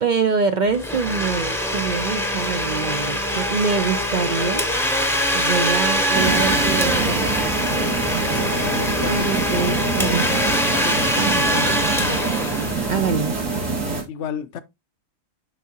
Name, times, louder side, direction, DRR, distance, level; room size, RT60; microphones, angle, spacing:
voice 1, 0.0-7.3 9.0-10.4 11.2-11.4 12.9-13.4, right 5 dB, 55° right, 0.5 m, -25 dB
Domestic sounds home sounds, 0.7-13.3, equal, ahead, 0.7 m, -23 dB
sound 1, 6.1-14.0, right 4 dB, 80° right, 2.4 m, -25 dB
voice 2, 8.6-10.2 10.7-12.2 13.1-13.2 14.1-14.6, left 7 dB, 65° left, 0.9 m, -33 dB
11.0 x 3.6 x 2.8 m
omnidirectional pair, 1.3 m